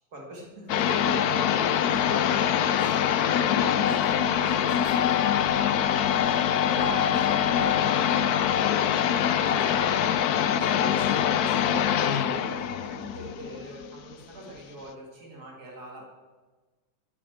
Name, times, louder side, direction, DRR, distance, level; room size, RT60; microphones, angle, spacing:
voice 1, 0.1-2.4 4.4-4.6 6.3-7.8 9.4-10.0 10.5-16.1, equal, 60° right, 0 dB, 2.8 m, -41 dB
sound 1, 0.7-14.1, left 9 dB, 65° left, 1.1 m, -24 dB
voice 2, 1.5-2.1 2.6-6.4 7.0-7.1 7.6-8.1 8.9-9.4, right 1 dB, 15° right, -1 dB, 2.4 m, -46 dB
9.8 x 9.0 x 7.9 m, 1.3 s
omnidirectional pair, 1.9 m